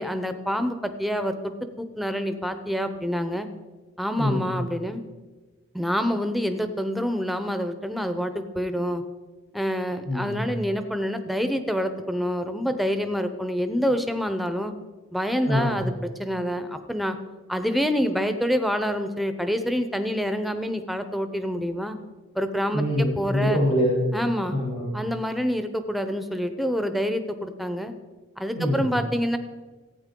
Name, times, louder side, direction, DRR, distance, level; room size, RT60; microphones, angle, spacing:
voice 1, 0.0-3.5 4.0-5.0 5.7-9.0 9.5-14.7 15.1-15.9 16.2-17.2 17.5-22.0 22.3-22.8 23.2-23.6 24.1-24.6 24.9-27.9 28.4-29.4, equal, ahead, 8 dB, 0.6 m, -27 dB
voice 2, 4.2-4.5 10.0-10.5 15.5-15.8 22.7-24.2 24.5-24.9 28.6-28.9, equal, 70° left, -5 dB, 2.9 m, -24 dB
15.0 x 8.8 x 3.7 m, 1.3 s
head